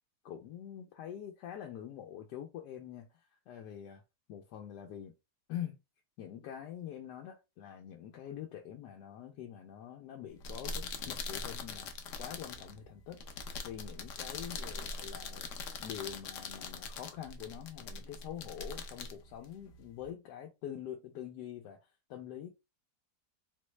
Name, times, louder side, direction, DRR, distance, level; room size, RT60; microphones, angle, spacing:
voice 1, 0.2-4.0 4.3-5.1 5.5-5.8 6.2-11.9 12.2-13.2 13.6-15.5 15.8-22.5, left 10 dB, 85° left, 1.2 m, -45 dB
sound 1, 10.3-20.1, left 4 dB, 65° left, 0.8 m, -42 dB
3.8 x 2.1 x 3.1 m
omnidirectional pair, 1.8 m